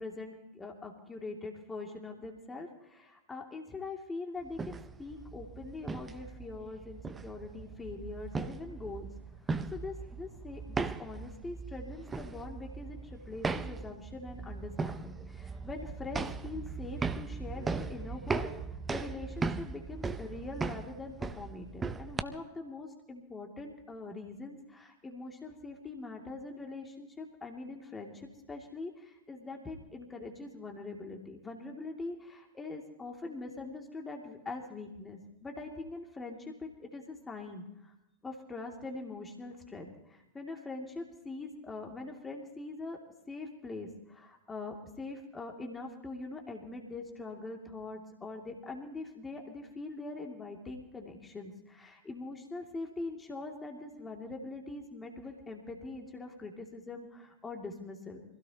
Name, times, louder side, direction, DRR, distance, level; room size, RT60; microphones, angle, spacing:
voice 1, 0.0-9.1 9.7-18.5 18.9-37.9 38.2-43.0 43.3-58.2, left 3 dB, 15° left, 1 dB, 2.5 m, -43 dB
sound 1, 4.5-22.2, right 4 dB, 15° right, 0.7 m, -38 dB
25.5 x 16.5 x 2.9 m, 0.87 s
figure-of-eight pair, 95°, 0 cm